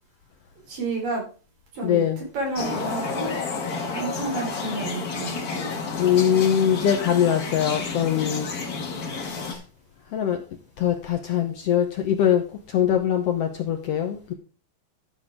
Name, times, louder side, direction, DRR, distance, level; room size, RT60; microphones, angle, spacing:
voice 1, 0.7-1.3 1.7-3.3 3.9-5.8, right 3 dB, 90° right, -1 dB, 6.0 m, -31 dB
voice 2, 1.8-2.2 5.9-8.5 9.1-9.6 10.1-10.4 10.8-14.3, left 9 dB, 70° left, 6 dB, 1.5 m, -23 dB
sound 1, 2.5-9.5, left 4 dB, 55° left, 1.0 m, -30 dB
13.0 x 6.9 x 3.6 m, 0.35 s
omnidirectional pair, 3.8 m